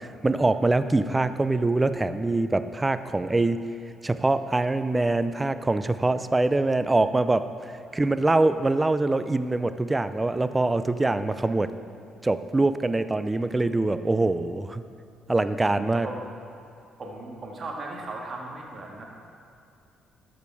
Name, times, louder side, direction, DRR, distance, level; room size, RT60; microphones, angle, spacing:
voice 1, 0.2-3.6 4.0-7.5 7.9-11.7 12.2-14.8 15.3-16.1, right 2 dB, 20° right, 12 dB, 0.5 m, -24 dB
voice 2, 8.0-8.3 15.9-16.2 17.0-19.0, right 2 dB, 45° right, -1 dB, 1.8 m, -37 dB
13.5 x 5.1 x 4.7 m, 2.5 s
supercardioid pair, 60°, 0 cm